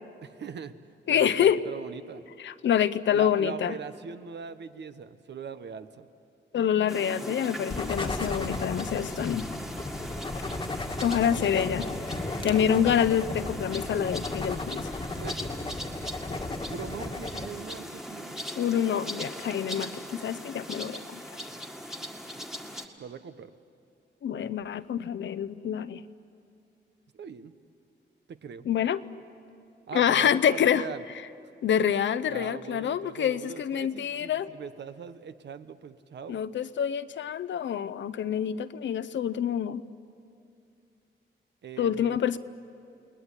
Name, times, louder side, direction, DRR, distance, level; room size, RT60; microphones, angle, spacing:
voice 1, 0.2-0.7 1.1-2.3 3.1-6.1 15.2-15.5 16.5-18.4 23.0-23.5 27.1-27.5 28.3-28.7 29.9-31.0 32.3-36.4 41.6-42.2, right 7 dB, 65° right, 11 dB, 1.1 m, -41 dB
voice 2, 1.1-1.6 2.4-3.7 6.5-9.5 11.0-11.9 12.4-14.9 18.6-21.2 24.2-26.0 28.7-29.0 29.9-30.8 31.6-34.5 36.3-39.8 41.8-42.4, left 9 dB, 75° left, 14 dB, 0.8 m, -26 dB
sound 1, 6.9-22.9, equal, ahead, 1.8 m, -39 dB
sound 2, 7.7-17.5, left 2 dB, 25° left, 1.5 m, -35 dB
29.5 x 19.5 x 9.9 m, 2.5 s
wide cardioid pair, 140°, 19 cm